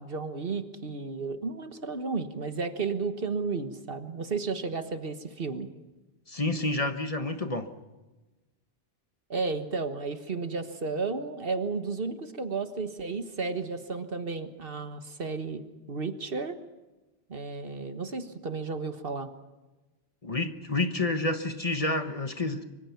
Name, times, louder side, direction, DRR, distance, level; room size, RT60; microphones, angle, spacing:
voice 1, 0.0-5.7 9.3-15.6 15.9-16.6 17.3-19.3, right 4 dB, 60° right, 8 dB, 1.6 m, -33 dB
voice 2, 6.3-7.7 20.2-22.6, left 2 dB, 35° left, 8 dB, 1.3 m, -29 dB
25.0 x 24.0 x 5.9 m, 1.1 s
omnidirectional pair, 1.1 m